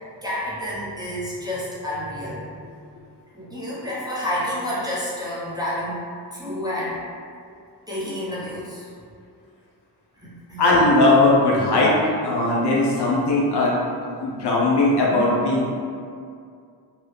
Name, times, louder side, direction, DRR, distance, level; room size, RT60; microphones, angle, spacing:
voice 1, 0.2-2.7 3.3-6.0 6.3-7.0 7.9-8.9 10.1-10.6, left 1 dB, 10° right, -9 dB, 0.9 m, -29 dB
voice 2, 10.6-13.8 14.2-15.7, left 2 dB, 65° left, -4 dB, 0.7 m, -19 dB
2.8 x 2.3 x 3.2 m, 2.3 s
cardioid pair, 75°, 43 cm